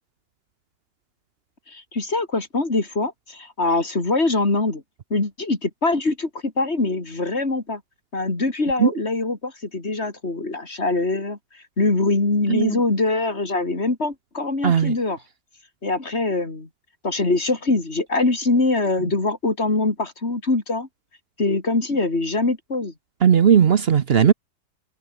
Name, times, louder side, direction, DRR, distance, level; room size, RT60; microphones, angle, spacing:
voice 1, 1.7-4.8 5.1-7.8 8.1-11.4 11.8-15.2 15.8-16.7 17.0-20.9 21.4-22.9, left 3 dB, 35° left, 3.7 m, -23 dB
voice 2, 14.6-15.0 23.2-24.3, right 8 dB, 55° right, 0.7 m, -16 dB
omnidirectional pair, 2.0 m